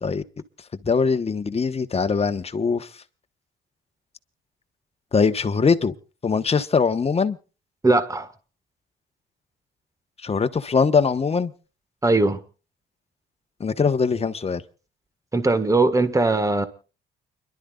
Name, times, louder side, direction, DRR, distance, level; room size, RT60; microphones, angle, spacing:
voice 1, 0.8-2.9 5.1-5.9 6.2-7.4 10.2-11.5 13.6-14.6, left 5 dB, 30° left, 1.2 m, -22 dB
voice 2, 7.8-8.3 12.0-12.4 15.3-16.7, right 2 dB, 15° right, 1.6 m, -20 dB
29.5 x 12.0 x 2.4 m
cardioid pair, 90°, 20 cm